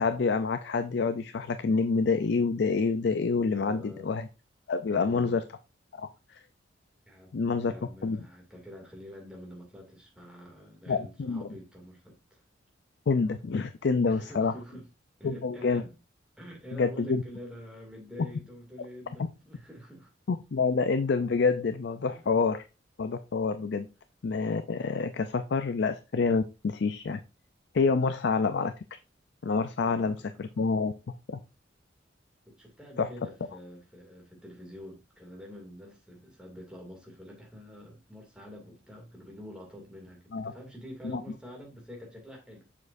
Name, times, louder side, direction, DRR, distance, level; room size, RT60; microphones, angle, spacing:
voice 1, 0.0-4.3 4.7-5.4 6.0-6.4 7.3-7.7 8.0-8.2 10.9-11.5 13.1-14.5 15.2-15.8 16.7-17.2 20.3-22.6 23.0-23.9 24.2-27.2 27.7-28.7 29.4-30.9 31.3-31.4 33.0-33.1 40.3-40.5 41.0-41.2, left 4 dB, 60° left, 0.4 m, -27 dB
voice 2, 3.5-4.1 4.9-5.4 7.1-12.4 14.0-14.9 15.2-15.9 16.4-20.1 22.0-22.3 29.8-30.5 32.5-42.7, equal, 5° right, 2.4 m, -47 dB
7.2 x 6.4 x 2.6 m
head